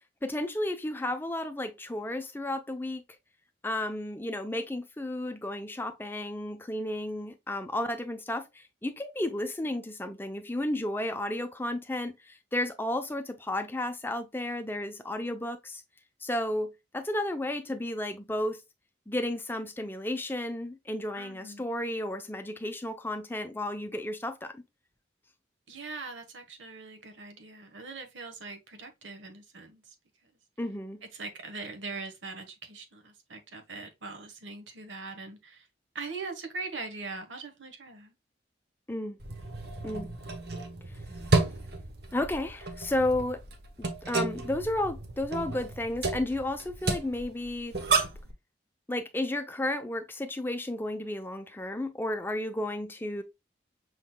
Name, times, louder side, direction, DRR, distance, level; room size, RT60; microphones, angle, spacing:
voice 1, 0.2-3.0 3.6-15.8 16.2-18.6 19.1-24.6 30.6-31.0 38.9-39.2 39.8-40.1 42.1-43.4 43.8-47.7 48.9-53.2, left 1 dB, 10° left, 0.5 m, -33 dB
voice 2, 21.1-21.8 25.7-29.8 31.1-35.7 35.9-38.1, right 3 dB, 80° right, 1.3 m, -41 dB
sound 1, 39.2-48.3, right 3 dB, 60° right, 1.0 m, -32 dB
6.1 x 3.8 x 2.2 m
head